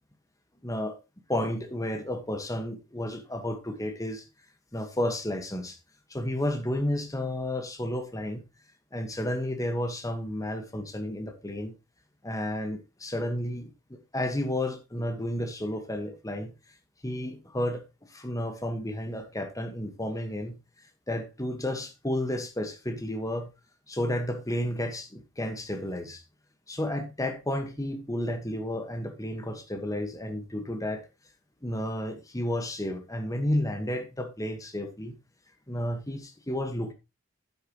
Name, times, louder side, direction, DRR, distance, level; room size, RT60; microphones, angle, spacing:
voice 1, 0.6-1.0 1.3-4.2 4.7-5.8 6.1-8.4 8.9-11.7 12.2-16.5 17.0-17.8 18.1-20.6 21.1-23.5 23.9-26.2 26.7-31.0 31.6-35.2 35.7-36.9, left 1 dB, 15° left, 1.5 m, -32 dB
9.5 x 8.3 x 3.1 m
head